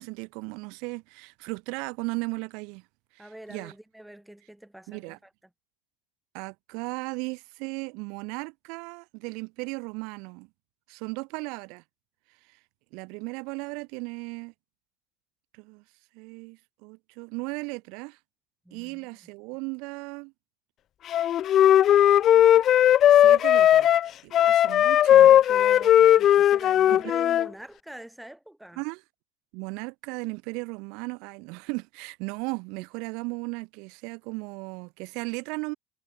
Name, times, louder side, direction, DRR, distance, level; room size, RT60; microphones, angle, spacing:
voice 1, 0.0-2.8 3.2-3.7 4.9-5.2 6.3-10.5 10.9-11.8 12.9-14.5 15.5-15.8 16.1-18.2 18.7-20.3 23.1-23.9 24.2-25.3 26.9-27.0 28.8-29.0 29.5-35.7, right 30 dB, 55° right, 3.6 m, -36 dB
voice 2, 3.2-5.3 18.6-19.1 25.1-28.8, right 1 dB, ahead, 3.3 m, -44 dB
Wind instrument woodwind instrument, 21.1-27.5, left 11 dB, 30° left, 0.3 m, -18 dB
supercardioid pair, 165°, 0 cm